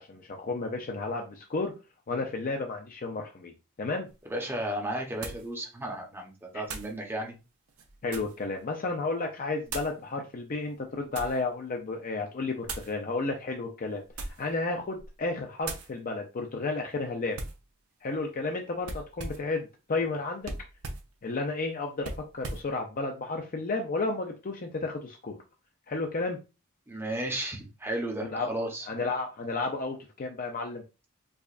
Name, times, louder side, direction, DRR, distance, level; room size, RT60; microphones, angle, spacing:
voice 1, 0.0-1.7 2.1-3.5 3.8-4.1 6.5-6.7 8.0-14.0 14.4-17.4 18.0-20.5 21.2-25.4 25.9-26.4 28.2-28.5 28.9-30.8, left 3 dB, 40° left, 2 dB, 0.5 m, -32 dB
sound 1, 4.1-4.2 5.2-5.5 6.6-7.0 7.7-8.4 9.7-10.0 10.7-11.4 12.6-12.9 14.0-14.5 14.9-15.2 15.6-15.9 17.3-17.6 18.8-19.5 20.4-21.1 22.0-22.7, right 3 dB, 70° right, 0.8 m, -39 dB
voice 2, 4.3-7.4 26.9-28.9, right 1 dB, 10° right, 0 dB, 0.8 m, -34 dB
4.7 x 2.4 x 2.4 m, 0.28 s
head